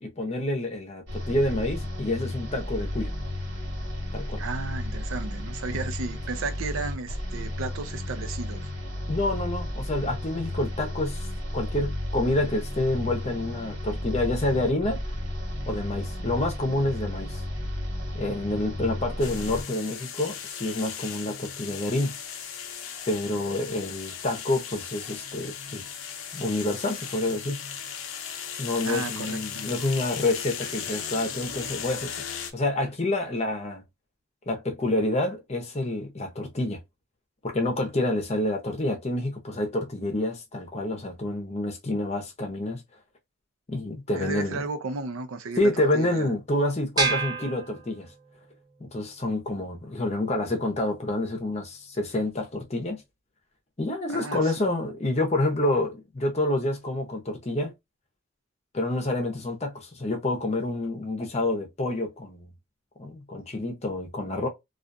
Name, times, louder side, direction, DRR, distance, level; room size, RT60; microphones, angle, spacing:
voice 1, 0.0-3.1 4.1-4.4 9.1-11.3 11.5-15.0 15.7-17.4 18.1-22.2 23.1-25.9 26.3-27.6 28.6-32.1 32.5-33.8 34.5-36.8 37.4-42.8 43.7-44.6 45.6-48.1 48.8-53.0 53.8-57.7 58.7-62.5 63.0-64.5, left 1 dB, 30° left, 0.7 m, -28 dB
sound 1, 1.1-19.6, left 1 dB, 65° right, 1.3 m, -33 dB
voice 2, 4.4-8.7 28.8-29.7 44.1-46.3 54.1-54.7, right 3 dB, 90° right, 0.5 m, -34 dB
sound 2, 19.2-32.5, left 7 dB, 90° left, 0.6 m, -37 dB
sound 3, 47.0-48.5, right 4 dB, 20° right, 0.5 m, -29 dB
2.4 x 2.3 x 2.5 m
head